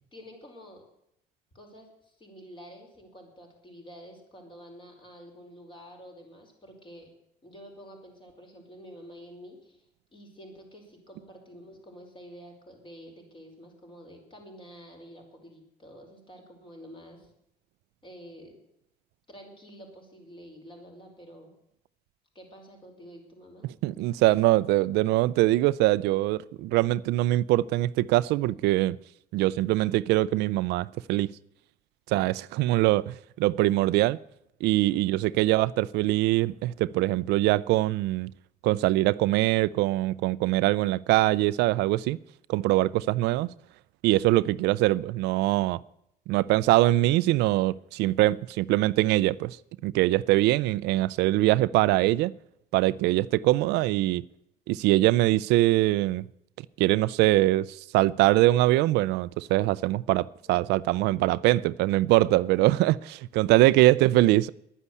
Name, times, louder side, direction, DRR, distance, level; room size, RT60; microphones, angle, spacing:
voice 1, 0.1-0.8 1.5-7.1 7.4-9.8 10.1-17.3 18.0-18.6 19.3-21.5 22.3-23.7 29.4-29.5 34.9-35.4 60.4-60.7, equal, 30° left, 5.1 m, -49 dB
voice 2, 23.8-29.0 29.3-31.3 32.1-34.2 34.6-38.3 38.6-42.2 42.5-43.5 44.0-45.8 46.3-49.6 49.8-52.3 52.7-54.2 54.7-56.2 56.8-64.5, right 17 dB, 90° right, 0.5 m, -23 dB
11.0 x 9.9 x 8.3 m
cardioid pair, 110°, 17 cm